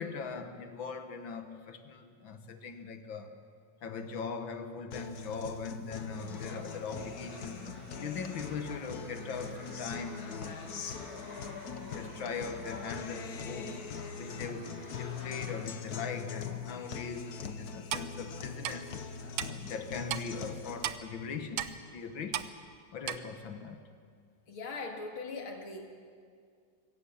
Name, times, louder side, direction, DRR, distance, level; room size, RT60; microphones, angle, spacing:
voice 1, 0.0-3.4 3.8-7.6 8.0-10.9 11.8-18.9 19.4-22.4 22.9-23.8, left 5 dB, 70° left, 1.9 m, -40 dB
Guitar, 4.9-20.9, left 6 dB, 55° left, 1.5 m, -42 dB
sound 1, 6.1-15.6, right 1 dB, 55° right, 6.4 m, -52 dB
Clock, 17.9-18.1 18.6-18.7 19.4-19.5 20.1-20.2 20.8-21.0 21.6-21.7 22.3-22.5 23.1-23.2, right 11 dB, 80° right, 1.6 m, -33 dB
voice 2, 24.5-25.9, left 3 dB, 85° left, 2.9 m, -40 dB
24.5 x 17.0 x 7.1 m
omnidirectional pair, 2.2 m